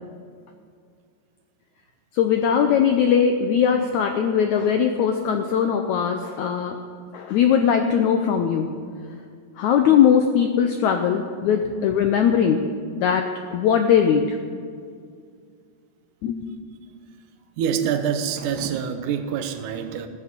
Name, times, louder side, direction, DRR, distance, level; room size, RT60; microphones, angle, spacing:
voice 1, 2.1-6.8 7.1-8.7 9.6-12.6 13.0-14.4 16.2-16.5, left 8 dB, 80° left, 5 dB, 1.6 m, -20 dB
voice 2, 17.6-20.1, right 8 dB, 70° right, 7 dB, 2.1 m, -26 dB
14.5 x 7.5 x 9.6 m, 2.2 s
omnidirectional pair, 4.2 m